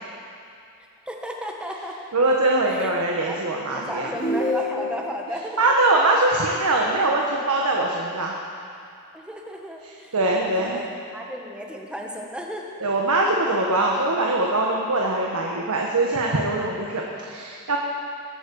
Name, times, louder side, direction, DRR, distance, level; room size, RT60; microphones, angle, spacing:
voice 1, 1.1-2.0 2.6-2.9 3.2-5.7 9.1-10.1 10.4-10.9 11.1-12.7, equal, 5° right, 0 dB, 1.4 m, -34 dB
voice 2, 2.1-4.3 4.8-4.9 5.6-8.3 10.1-10.8 12.8-17.8, right 2 dB, 85° right, -1 dB, 1.4 m, -22 dB
sound 1, 4.1-5.2, left 2 dB, 40° left, 2.0 m, -26 dB
21.5 x 8.6 x 7.0 m, 2.5 s
head